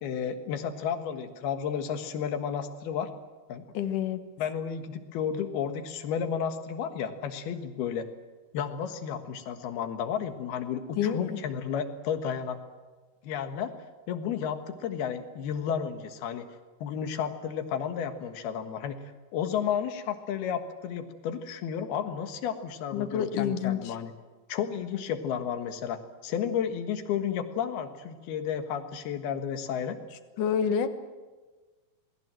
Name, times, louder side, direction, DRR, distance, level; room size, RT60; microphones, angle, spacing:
voice 1, 0.0-3.1 3.5-3.6 4.4-8.1 8.5-12.6 13.2-13.7 14.1-16.5 16.8-19.0 19.3-24.1 24.5-30.0, left 8 dB, 85° left, 8 dB, 3.5 m, -32 dB
voice 2, 3.7-4.2 11.0-11.4 22.9-24.0 30.4-30.9, left 8 dB, 65° left, 9 dB, 2.7 m, -28 dB
27.5 x 20.5 x 7.7 m, 1.3 s
omnidirectional pair, 4.4 m